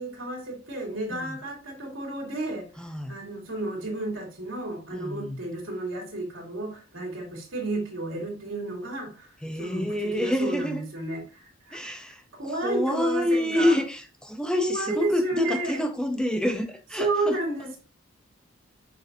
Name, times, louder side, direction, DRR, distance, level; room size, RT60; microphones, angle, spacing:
voice 1, 0.0-2.7 3.1-9.3 9.6-11.9 12.4-13.7 14.6-15.8 17.0-17.8, right 2 dB, 80° right, -1 dB, 2.9 m, -31 dB
voice 2, 2.8-3.2 4.9-5.4 9.4-10.8 11.7-17.8, left 1 dB, 5° left, 5 dB, 0.6 m, -28 dB
6.6 x 6.1 x 2.7 m, 0.35 s
head